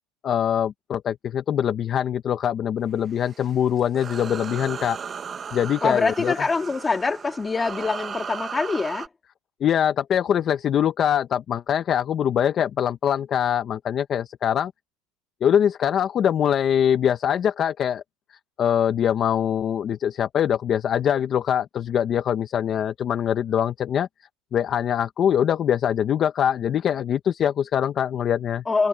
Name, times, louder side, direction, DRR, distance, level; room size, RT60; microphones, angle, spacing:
voice 1, 0.2-5.0 5.5-6.3 9.6-14.7 15.4-18.0 18.6-24.1 24.5-28.6, left 9 dB, 30° left, 0.8 m, -23 dB
sound 1, 3.1-9.1, right 6 dB, 20° right, 1.4 m, -36 dB
voice 2, 5.8-9.1 28.7-28.9, left 4 dB, 15° left, 2.3 m, -24 dB
cardioid pair, 160°, 0 cm